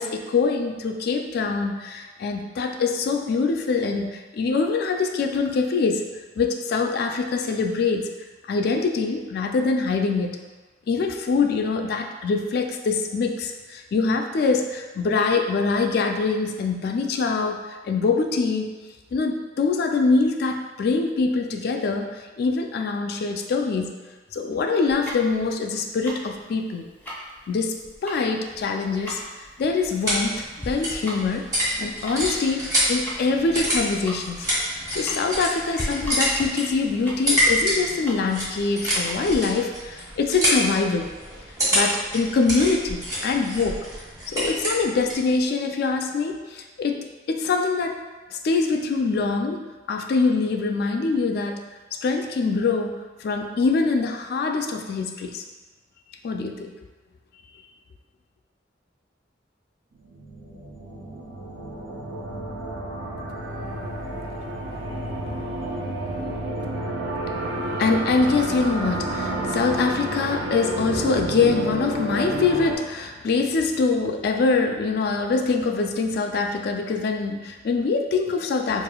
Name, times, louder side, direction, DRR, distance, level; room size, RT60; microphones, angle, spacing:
voice 1, 0.0-6.1 6.4-8.1 8.4-10.4 10.9-18.7 19.1-23.9 24.3-26.9 27.5-27.8 28.0-29.2 29.6-31.5 31.8-34.5 34.9-41.1 41.7-43.9 44.3-47.0 47.3-48.0 48.3-51.6 52.0-55.4 56.2-56.8 64.6-64.8 67.5-78.8, left 4 dB, 55° left, 4 dB, 0.3 m, -24 dB
Tick-tock, 24.9-39.5, equal, 10° left, 0.6 m, -39 dB
sound 1, 29.4-45.3, equal, 20° right, 1.3 m, -27 dB
sound 2, 60.0-72.8, right 1 dB, 80° right, 0.5 m, -30 dB
4.8 x 2.5 x 2.2 m, 1.3 s
head